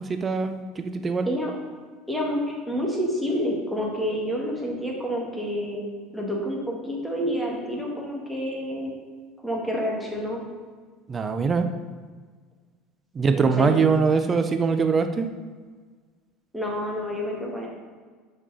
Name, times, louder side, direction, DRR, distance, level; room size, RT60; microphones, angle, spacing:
voice 1, 0.1-1.3 11.1-11.7 13.1-15.3, right 5 dB, 30° right, 8 dB, 0.6 m, -22 dB
voice 2, 2.1-2.4 2.7-5.8 6.1-8.9 9.4-10.4 13.3-13.7 16.5-17.7, equal, ahead, -2 dB, 1.6 m, -28 dB
6.2 x 4.2 x 4.0 m, 1.5 s
hypercardioid pair, 80°, 0 cm